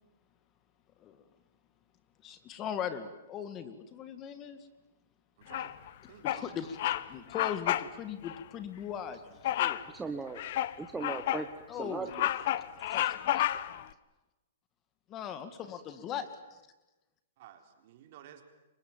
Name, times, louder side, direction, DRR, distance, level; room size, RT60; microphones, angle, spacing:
voice 1, 2.2-4.7 6.2-6.8 7.1-9.8 11.7-12.1 12.9-13.5 15.1-16.7, left 8 dB, 25° left, 11 dB, 2.0 m, -39 dB
voice 2, 5.4-5.7 6.1-6.9 17.4-18.4, right 10 dB, 50° right, 5 dB, 4.0 m, -53 dB
Bird vocalization bird call bird song, 5.5-5.9 6.2-6.5 6.8-7.0 7.3-7.9 8.2-8.4 9.4-9.9 10.4-11.5 11.9-13.8, left 13 dB, 55° left, 1.1 m, -31 dB
voice 3, 9.9-10.4 10.8-12.3 12.9-13.1, right 4 dB, 10° right, 5 dB, 1.4 m, -38 dB
29.0 x 24.5 x 7.5 m, 1.0 s
hypercardioid pair, 135°, 0 cm